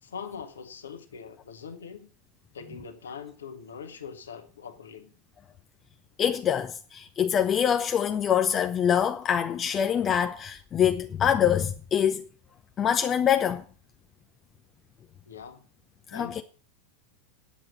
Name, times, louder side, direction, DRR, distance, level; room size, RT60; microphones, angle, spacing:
voice 1, 0.0-2.1 2.5-5.1 15.2-15.6 16.1-16.4, left 6 dB, 70° left, 1.6 m, -42 dB
voice 2, 6.2-12.3 12.8-13.6 16.1-16.4, left 9 dB, 30° left, 0.8 m, -25 dB
10.0 x 7.9 x 7.3 m
figure-of-eight pair, 85°, 0 cm